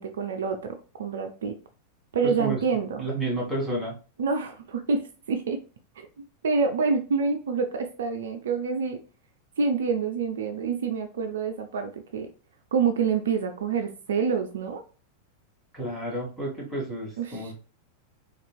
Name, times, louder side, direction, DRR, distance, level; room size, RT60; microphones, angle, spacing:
voice 1, 0.0-1.5 2.1-3.0 4.2-5.6 6.0-6.1 6.4-9.0 9.6-12.3 12.7-14.8 17.2-17.5, right 5 dB, 60° right, 6 dB, 0.3 m, -27 dB
voice 2, 2.2-2.6 3.0-3.9 15.7-17.5, right 1 dB, 5° right, -5 dB, 1.6 m, -31 dB
3.7 x 2.3 x 2.3 m, 0.36 s
figure-of-eight pair, 90°, 0 cm